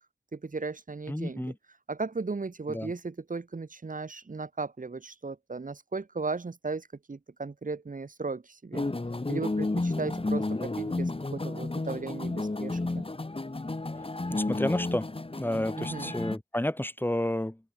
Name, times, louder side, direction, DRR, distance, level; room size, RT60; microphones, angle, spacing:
voice 1, 0.3-1.4 1.9-8.9 9.3-13.0 15.8-16.1, right 4 dB, 70° right, 5.6 m, -36 dB
voice 2, 1.1-1.6 2.7-2.9 14.3-17.6, left 1 dB, 15° left, 3.1 m, -31 dB
sound 1, 8.7-16.4, left 2 dB, 40° left, 4.7 m, -32 dB
open air
wide cardioid pair, 60°, 14 cm